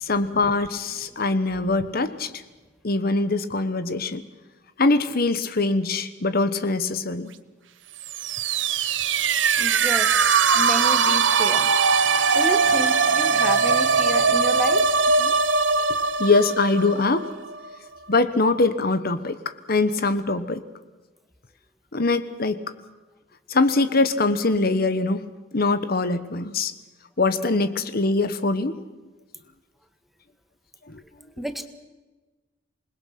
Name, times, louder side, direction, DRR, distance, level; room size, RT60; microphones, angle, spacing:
voice 1, 0.0-2.3 2.8-4.2 4.8-7.3 15.2-15.3 16.2-17.3 18.1-20.6 21.9-22.6 23.5-25.2 25.5-26.7 27.2-28.8 30.9-31.0, left 3 dB, 50° left, 11 dB, 1.2 m, -23 dB
sound 1, 8.0-17.8, right 5 dB, 75° right, 1.1 m, -21 dB
voice 2, 9.6-10.1 10.5-11.7 12.3-14.8 31.4-31.7, equal, ahead, 8 dB, 1.6 m, -30 dB
27.0 x 21.0 x 5.9 m, 1.2 s
head